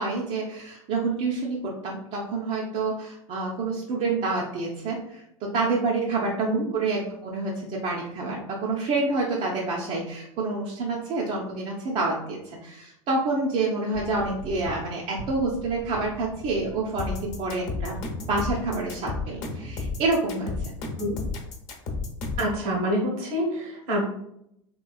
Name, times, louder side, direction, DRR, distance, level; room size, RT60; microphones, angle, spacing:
voice 1, 0.0-17.9 18.3-20.7, right 3 dB, 40° right, -3 dB, 0.6 m, -28 dB
sound 1, 13.9-19.0, right 2 dB, 80° right, 0.7 m, -41 dB
sound 2, 17.0-22.5, left 3 dB, 50° left, 0.9 m, -32 dB
voice 2, 22.4-24.1, equal, 55° right, -3 dB, 0.9 m, -26 dB
3.2 x 3.0 x 2.3 m, 0.78 s
hypercardioid pair, 85°, 17 cm